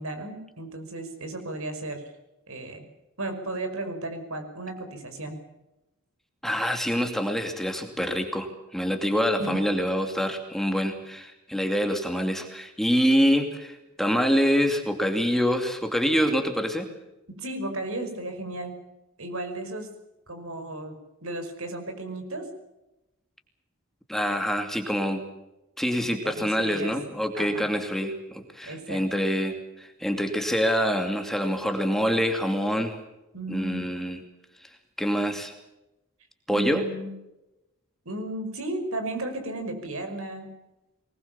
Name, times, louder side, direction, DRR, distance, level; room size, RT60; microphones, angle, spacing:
voice 1, 0.0-2.1 2.5-2.9 3.2-5.4 9.4-9.6 17.4-18.8 19.2-19.9 20.3-22.5 26.2-27.0 27.3-27.5 28.6-29.0 33.3-33.9 36.5-37.1 38.1-40.5, right 2 dB, 70° right, 7 dB, 5.4 m, -34 dB
voice 2, 6.4-16.9 24.1-25.2 25.8-33.0 33.5-34.2 35.0-35.5 36.5-36.8, equal, ahead, 5 dB, 2.6 m, -26 dB
23.5 x 20.5 x 7.3 m, 0.95 s
head